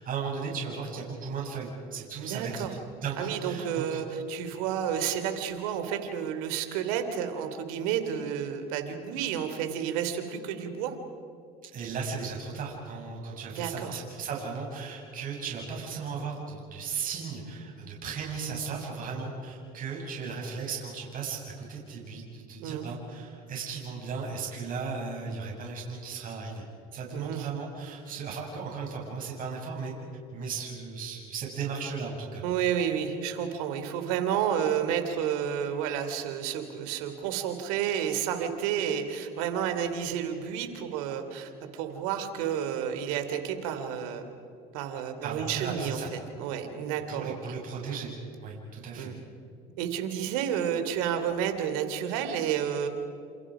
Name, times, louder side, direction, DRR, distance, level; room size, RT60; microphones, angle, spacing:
voice 1, 0.0-2.6 2.9-4.0 11.6-21.4 21.7-26.6 26.9-29.9 30.3-32.4 45.2-46.1 47.1-48.1 48.4-49.1, right 5 dB, 50° right, -2 dB, 7.5 m, -36 dB
voice 2, 2.2-2.7 3.2-10.9 13.5-14.0 22.6-22.9 27.1-27.5 32.4-44.3 44.7-47.5 47.9-48.0 49.0-49.2 49.8-52.9, right 8 dB, 85° right, 7 dB, 3.1 m, -31 dB
29.5 x 28.5 x 5.0 m, 2.5 s
supercardioid pair, 80°, 18 cm